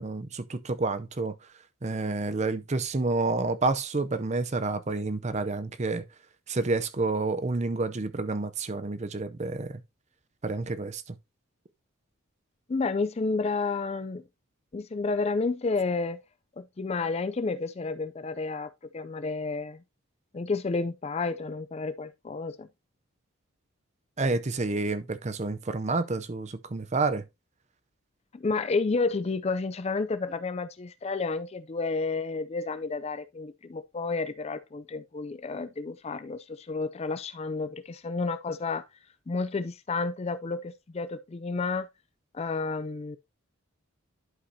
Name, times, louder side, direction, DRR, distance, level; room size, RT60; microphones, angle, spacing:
voice 1, 0.0-1.3 1.8-6.1 6.5-9.8 10.4-11.2 24.2-27.3, right 3 dB, 30° right, 0.6 m, -29 dB
voice 2, 12.7-14.2 14.7-16.2 16.6-19.8 20.3-22.7 28.3-38.8 39.3-41.9 42.3-43.2, left 3 dB, 30° left, 0.4 m, -31 dB
11.5 x 5.0 x 2.7 m
head